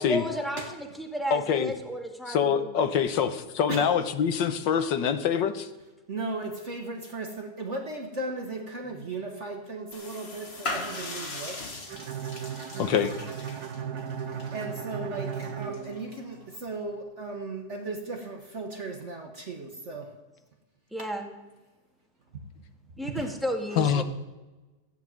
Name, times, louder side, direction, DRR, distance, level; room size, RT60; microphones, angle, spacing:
voice 1, 0.0-3.0 20.9-21.3 23.0-24.0, equal, ahead, 2 dB, 1.9 m, -33 dB
voice 2, 1.3-1.7 2.3-5.7 12.8-13.2 23.8-24.0, left 7 dB, 85° left, 10 dB, 1.7 m, -25 dB
voice 3, 6.1-11.7 14.3-20.1 23.1-23.3, right 2 dB, 40° right, 2 dB, 1.7 m, -36 dB
sound 1, 9.9-16.6, left 2 dB, 35° left, 1.8 m, -40 dB
Bowed string instrument, 11.9-16.7, right 8 dB, 65° right, 1.3 m, -36 dB
15.5 x 9.6 x 7.5 m, 1.1 s
omnidirectional pair, 1.9 m